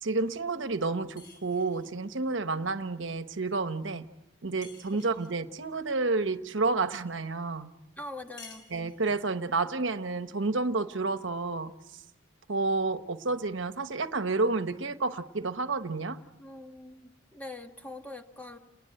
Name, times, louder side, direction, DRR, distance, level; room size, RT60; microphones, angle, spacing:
voice 1, 0.0-4.1 4.4-7.7 8.7-11.7 12.5-16.2, right 3 dB, 75° right, 10 dB, 1.0 m, -30 dB
sound 1, 1.2-2.0 4.6-5.4 8.4-9.3, left 4 dB, 60° left, 3.6 m, -52 dB
voice 2, 8.0-8.7 16.4-18.6, left 2 dB, 10° left, 5 dB, 1.3 m, -43 dB
29.5 x 20.5 x 7.7 m, 0.96 s
head